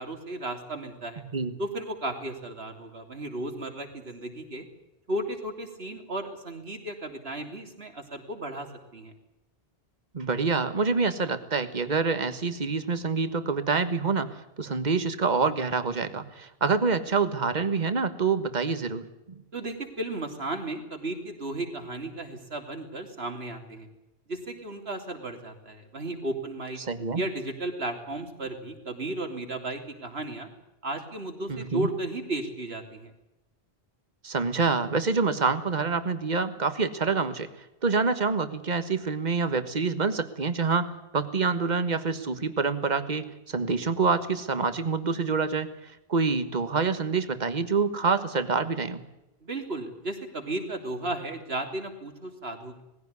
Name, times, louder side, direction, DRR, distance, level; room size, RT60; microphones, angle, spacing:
voice 1, 0.0-1.2 1.6-4.7 5.1-9.1 19.5-23.9 24.3-26.8 27.1-30.5 30.8-33.1 49.4-52.8, right 2 dB, 75° right, 4 dB, 3.3 m, -34 dB
voice 2, 10.1-19.4 26.8-27.2 31.5-31.9 34.2-37.5 37.8-49.0, right 4 dB, 45° right, 11 dB, 1.6 m, -27 dB
20.0 x 16.0 x 9.6 m, 0.94 s
omnidirectional pair, 1.1 m